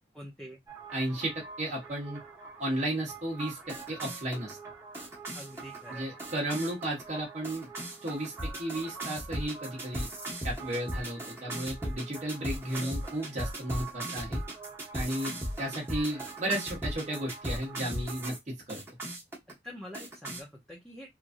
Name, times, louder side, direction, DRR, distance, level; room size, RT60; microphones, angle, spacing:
voice 1, 0.1-0.6 5.3-6.1 12.7-13.1 15.1-15.5 19.5-21.1, equal, 5° left, 0.6 m, -46 dB
sound 1, 0.7-18.4 18.7-19.5 19.9-20.4, right 1 dB, 15° right, 1.0 m, -39 dB
voice 2, 0.9-2.2 2.6-4.6 5.9-7.7 8.0-10.1 10.4-14.4 14.9-18.8, right 1 dB, 40° right, 0.9 m, -34 dB
3.0 x 2.5 x 2.5 m
head